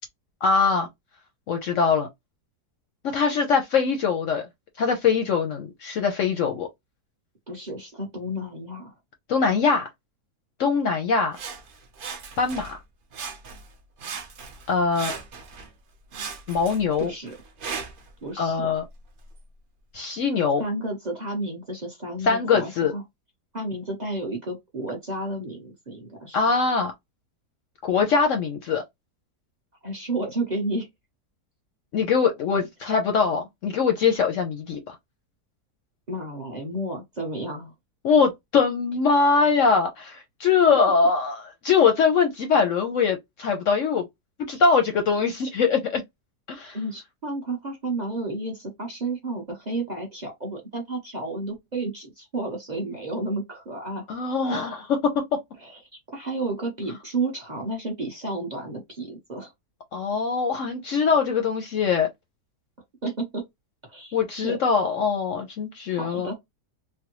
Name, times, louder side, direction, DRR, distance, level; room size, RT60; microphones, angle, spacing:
voice 1, 0.4-0.9 1.5-2.1 3.0-4.5 4.8-6.7 9.3-9.9 10.6-11.4 12.4-12.8 14.7-15.1 16.5-17.1 18.4-18.8 19.9-20.6 22.2-22.9 26.3-26.9 27.8-28.8 31.9-35.0 38.0-44.1 44.5-46.0 46.5-46.8 54.1-55.1 59.9-62.1 64.1-66.3, left 5 dB, 65° left, 0.8 m, -22 dB
voice 2, 7.5-8.9 17.0-17.3 18.2-18.7 20.6-23.0 23.5-26.4 29.8-30.9 36.1-37.7 44.5-44.6 46.7-54.1 55.6-59.5 63.0-63.4 63.9-64.2 64.4-64.6 65.9-66.3, right 2 dB, 35° right, 0.8 m, -31 dB
Sawing, 11.3-12.8 13.1-13.7 14.0-15.7 16.1-18.1 18.8-18.9, right 5 dB, 70° right, 0.5 m, -37 dB
3.3 x 2.1 x 2.9 m
omnidirectional pair, 1.7 m